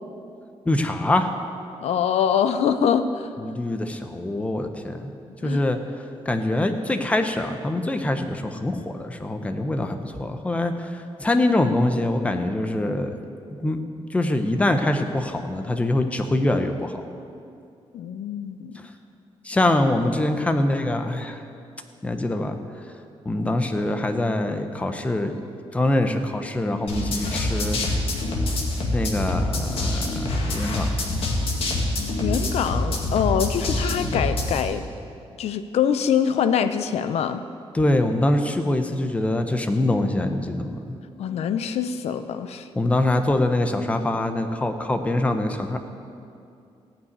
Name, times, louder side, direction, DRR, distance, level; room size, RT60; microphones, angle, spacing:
voice 1, 0.7-1.3 3.4-5.1 5.4-5.8 6.3-13.1 13.5-17.0 19.4-21.4 22.0-22.6 23.2-25.4 25.7-27.8 28.9-30.9 37.7-41.0 42.8-45.8, left 1 dB, 15° left, 6 dB, 0.7 m, -24 dB
voice 2, 1.8-3.3 5.4-5.6 17.9-18.8 32.2-34.9 35.4-37.4 41.2-42.7, left 8 dB, 90° left, 10 dB, 0.6 m, -24 dB
sound 1, 26.9-34.6, left 2 dB, 65° left, 1.9 m, -25 dB
16.0 x 5.8 x 9.4 m, 2.5 s
wide cardioid pair, 170°, 10 cm